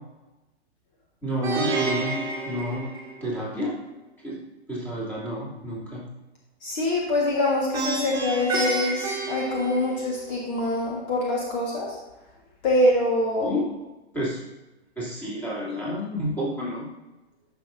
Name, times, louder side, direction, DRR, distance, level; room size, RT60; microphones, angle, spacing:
voice 1, 1.2-2.9 3.2-3.8 4.2-4.4 4.7-6.0 13.4-13.6 14.1-14.4 15.0-16.9, equal, 5° left, -8 dB, 2.8 m, -30 dB
Plucked string instrument, 1.4-3.6 7.7-10.3, right 3 dB, 10° right, 1.8 m, -29 dB
voice 2, 6.6-11.9 12.6-13.5, left 1 dB, 40° left, -3 dB, 1.7 m, -24 dB
11.0 x 5.9 x 2.7 m, 1.1 s
figure-of-eight pair, 115°, 33 cm